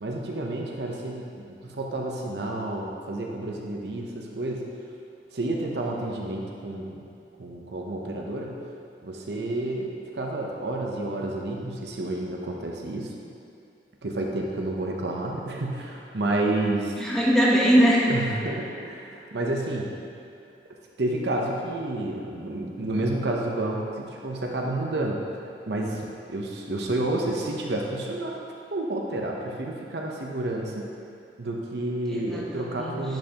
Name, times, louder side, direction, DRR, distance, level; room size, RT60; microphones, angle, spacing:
voice 1, 0.0-4.6 5.3-7.0 7.4-8.5 9.0-13.1 14.0-16.9 18.1-20.0 21.0-25.2 25.7-26.0 26.3-28.4 28.7-30.9 31.4-33.2, right 2 dB, 75° right, 0 dB, 0.8 m, -30 dB
voice 2, 16.9-18.0 32.1-33.0, equal, 5° left, -6 dB, 1.1 m, -21 dB
10.5 x 5.5 x 2.9 m, 2.5 s
head